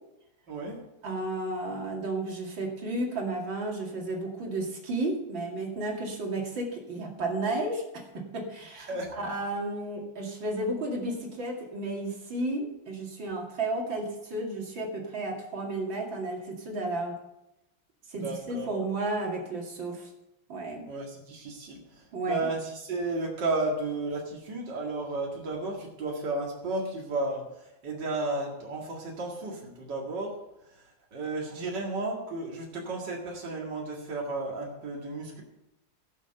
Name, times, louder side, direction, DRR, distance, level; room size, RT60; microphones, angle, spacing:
voice 1, 0.5-0.8 8.9-9.2 18.1-18.8 20.9-27.5 27.8-30.4 31.1-35.4, right 2 dB, 65° right, -2 dB, 2.7 m, -33 dB
voice 2, 1.0-17.2 18.1-20.1 20.5-20.9 22.1-22.5, right 2 dB, 80° right, 0 dB, 3.1 m, -33 dB
17.0 x 6.5 x 6.8 m, 0.88 s
omnidirectional pair, 2.0 m